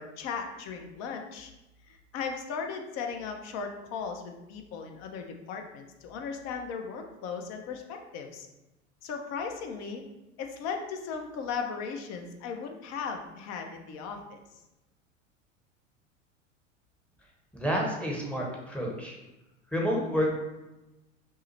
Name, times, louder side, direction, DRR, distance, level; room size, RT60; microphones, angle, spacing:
voice 1, 0.0-1.5 1.9-8.5 9.0-10.0 10.4-14.4, left 5 dB, 45° left, 4 dB, 0.7 m, -37 dB
voice 2, 17.5-19.2 19.7-20.3, equal, 5° left, -2 dB, 0.8 m, -29 dB
5.5 x 2.0 x 3.1 m, 1.0 s
hypercardioid pair, 90°, 38 cm